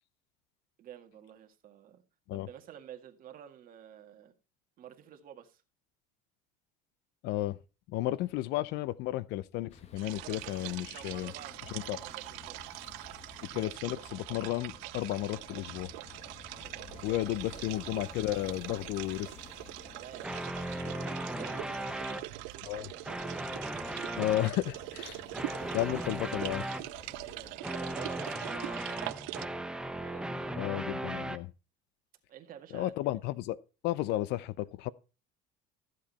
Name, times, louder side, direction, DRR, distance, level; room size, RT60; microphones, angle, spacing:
voice 1, 0.8-2.0 2.3-4.4 4.8-5.6 10.1-11.6 11.9-12.6 16.5-17.2 20.0-23.6 25.9-26.0 27.0-30.7 32.3-32.9, right 10 dB, 50° right, 1.9 m, -51 dB
voice 2, 7.2-7.6 7.9-11.3 11.7-12.0 13.4-15.9 17.0-19.3 22.6-22.9 24.2-25.2 25.5-26.6 30.6-31.5 32.7-33.6 33.8-34.9, left 15 dB, 65° left, 0.6 m, -33 dB
sound 1, 9.7-27.6, left 6 dB, 35° left, 1.5 m, -53 dB
sound 2, 10.0-29.5, right 22 dB, 75° right, 0.5 m, -43 dB
sound 3, 20.2-22.2 22.9-24.5 25.3-26.9 27.6-31.4, right 1 dB, 5° right, 0.8 m, -37 dB
14.0 x 7.6 x 4.2 m
supercardioid pair, 115°, 19 cm